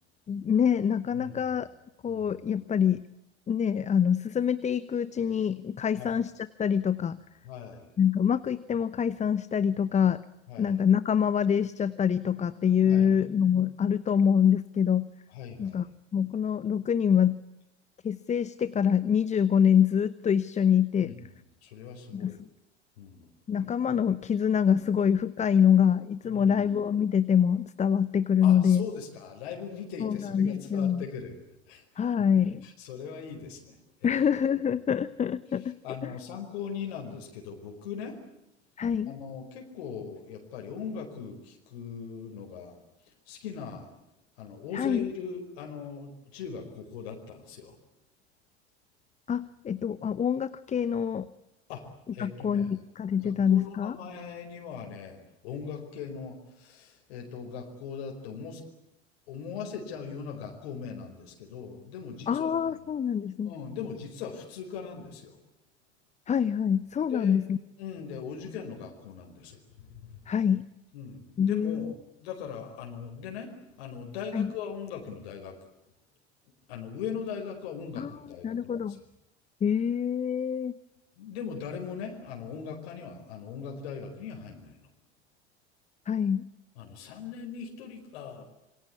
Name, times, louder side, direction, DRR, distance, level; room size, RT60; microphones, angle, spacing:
voice 1, 0.3-1.7 2.0-3.0 3.5-7.2 8.0-10.2 10.6-15.1 15.6-15.8 16.1-17.4 18.0-21.1 22.1-22.4 23.5-28.9 30.0-31.0 32.0-32.6 34.0-35.8 38.8-39.1 44.7-45.1 49.3-51.3 52.2-53.9 62.3-63.5 66.3-67.6 70.3-70.6 71.4-71.9 74.3-74.5 78.0-78.1 78.4-79.0 79.6-80.7 86.1-86.4, left 8 dB, 20° left, 16 dB, 0.9 m, -25 dB
voice 2, 1.1-1.6 2.1-2.3 6.0-6.1 7.4-7.9 10.5-10.8 12.8-13.2 15.3-15.8 21.0-21.3 21.6-22.4 23.0-23.3 26.2-26.7 28.4-31.3 31.7-32.1 32.3-34.2 35.8-38.2 39.0-42.7 43.0-43.9 44.4-47.7 51.7-52.7 53.2-58.6 59.3-62.8 63.4-65.4 67.1-67.4 67.8-70.3 70.9-75.6 76.7-79.0 81.2-84.9 86.7-88.4, left 6 dB, 60° left, 2 dB, 5.0 m, -40 dB
27.5 x 23.5 x 8.5 m, 0.88 s
figure-of-eight pair, 75°, 33 cm